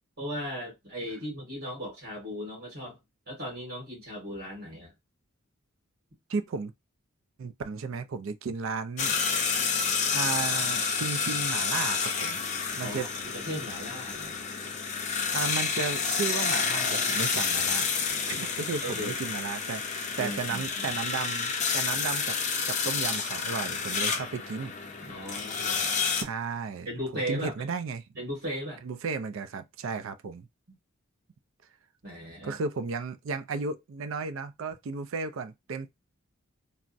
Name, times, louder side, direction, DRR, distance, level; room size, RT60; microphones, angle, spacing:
voice 1, 0.2-3.0 3.3-4.9 12.8-14.3 18.1-18.2 18.8-19.2 20.2-20.9 25.1-26.0 26.8-27.5 28.1-28.8 32.0-32.6, equal, 45° right, 1.8 m, -37 dB
voice 2, 6.3-6.7 7.4-9.4 10.1-12.4 12.7-13.1 15.3-17.9 18.3-22.4 22.7-24.7 26.2-26.9 27.3-28.0 28.8-30.5 32.4-35.9, right 5 dB, 65° right, 0.4 m, -34 dB
sound 1, 9.0-26.2, left 5 dB, 35° left, 0.5 m, -29 dB
3.3 x 2.0 x 2.5 m
head